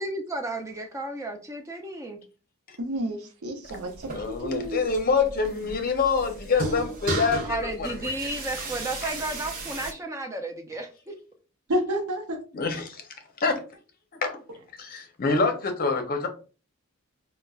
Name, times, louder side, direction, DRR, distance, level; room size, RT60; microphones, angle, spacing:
voice 1, 0.0-2.2 7.4-11.1, right 2 dB, 15° right, 0.4 m, -33 dB
voice 2, 2.8-4.8 11.7-12.4, equal, 75° right, 0.6 m, -30 dB
sound 1, 3.6-9.9, right 3 dB, 40° right, 0.8 m, -35 dB
voice 3, 4.1-7.9 12.5-13.1 13.4-13.6 14.2-14.4 14.8-16.3, left 4 dB, 40° left, 0.6 m, -26 dB
5.2 x 2.1 x 2.3 m
head